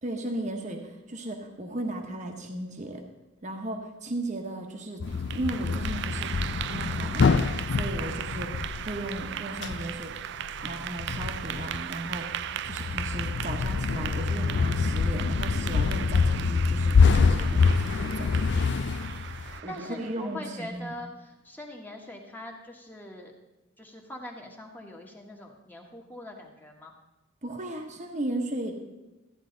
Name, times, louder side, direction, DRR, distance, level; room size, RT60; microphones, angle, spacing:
voice 1, 0.0-3.0 3.4-5.0 5.3-10.1 10.6-18.3 19.6-20.9 27.4-28.8, right 1 dB, 35° right, 3 dB, 1.1 m, -36 dB
sound 1, 5.0-19.6, left 5 dB, 55° left, 0.4 m, -26 dB
Clapping / Applause, 5.1-20.3, right 10 dB, 55° right, 0.3 m, -37 dB
voice 2, 19.7-23.3 23.8-27.0, left 1 dB, 10° left, 1 dB, 1.3 m, -42 dB
14.0 x 9.8 x 3.9 m, 1.1 s
head